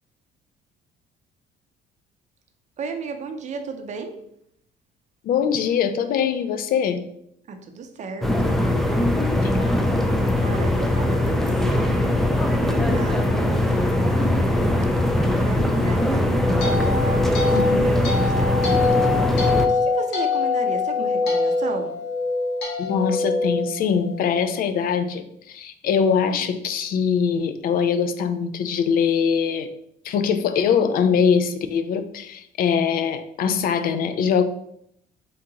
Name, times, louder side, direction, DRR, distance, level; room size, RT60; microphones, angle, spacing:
voice 1, 2.8-4.2 7.5-8.7 10.4-14.4 15.4-16.8 17.0-18.6 19.7-22.0, right 4 dB, 45° right, 6 dB, 0.6 m, -34 dB
voice 2, 5.2-7.0 9.4-9.6 17.5-17.9 22.8-29.7 30.0-34.4, left 7 dB, 60° left, 10 dB, 0.4 m, -22 dB
sound 1, 8.2-19.7, left 1 dB, ahead, 0.4 m, -21 dB
sound 2, 16.1-24.4, left 3 dB, 90° left, 1.1 m, -24 dB
3.7 x 2.8 x 3.7 m, 0.73 s
cardioid pair, 110°, 17 cm